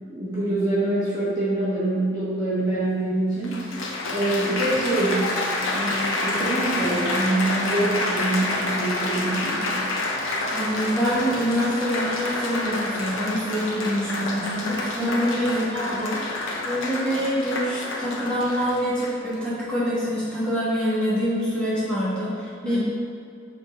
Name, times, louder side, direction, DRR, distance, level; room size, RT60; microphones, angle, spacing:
voice 1, 0.0-3.8 4.1-5.3 5.7-9.9 15.0-15.2 22.6-22.8, right 1 dB, 20° right, -11 dB, 1.1 m, -25 dB
Applause, 2.7-2.8 3.4-19.4 20.1-20.4, left 2 dB, 85° left, 0.7 m, -28 dB
voice 2, 10.5-16.2 16.6-22.8, equal, 5° left, -10 dB, 1.4 m, -25 dB
6.0 x 3.7 x 4.3 m, 2.3 s
head